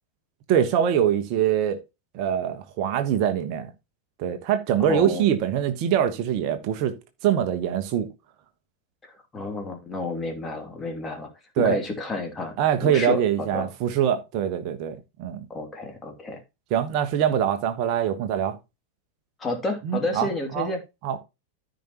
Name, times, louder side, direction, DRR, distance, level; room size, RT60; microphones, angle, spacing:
voice 1, 0.5-1.8 2.1-3.7 4.2-6.9 7.2-8.1 11.6-11.8 12.6-15.5 16.7-18.6 19.8-20.3 20.5-20.7 21.0-21.2, right 9 dB, 40° right, 1.3 m, -23 dB
voice 2, 4.8-5.2 9.0-11.3 11.6-13.7 15.5-16.4 19.4-20.8, left 2 dB, 15° left, 2.7 m, -30 dB
14.5 x 5.2 x 3.0 m
figure-of-eight pair, 90°, 0 cm